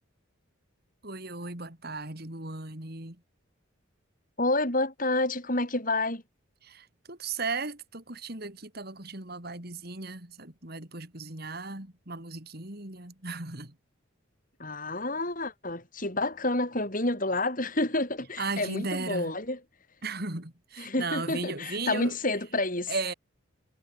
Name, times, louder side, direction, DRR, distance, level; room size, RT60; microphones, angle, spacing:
voice 1, 1.0-3.2 6.6-13.7 18.4-19.4 20.0-22.2 22.9-23.1, right 3 dB, 50° right, 3.4 m, -36 dB
voice 2, 4.4-6.2 14.6-19.6 20.8-22.9, left 2 dB, 40° left, 5.9 m, -29 dB
head